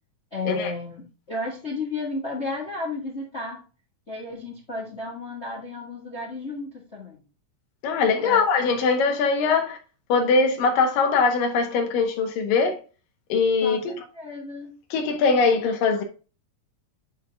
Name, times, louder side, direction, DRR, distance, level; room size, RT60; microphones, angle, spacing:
voice 1, 0.3-3.6 4.1-7.2 8.2-8.4 13.6-14.7, left 3 dB, 30° left, 1.4 m, -33 dB
voice 2, 7.8-9.8 10.1-12.8 13.3-13.9 14.9-16.0, left 4 dB, 85° left, 3.2 m, -21 dB
9.5 x 4.6 x 3.5 m
omnidirectional pair, 3.8 m